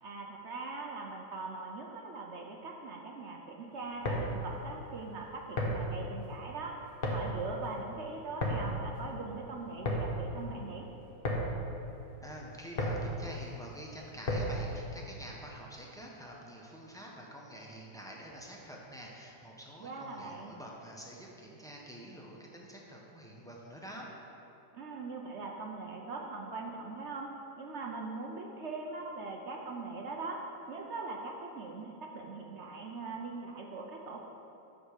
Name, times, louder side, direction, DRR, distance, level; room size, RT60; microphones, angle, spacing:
voice 1, 0.0-6.8 7.1-10.9 19.8-20.6 24.7-27.3 27.6-30.4 30.7-34.2, right 3 dB, 60° right, 1 dB, 0.7 m, -41 dB
sound 1, 3.8-14.7, equal, 35° left, 1.1 m, -36 dB
voice 2, 12.2-24.1, equal, 5° left, -3 dB, 0.6 m, -47 dB
8.8 x 4.9 x 6.5 m, 2.9 s
omnidirectional pair, 1.9 m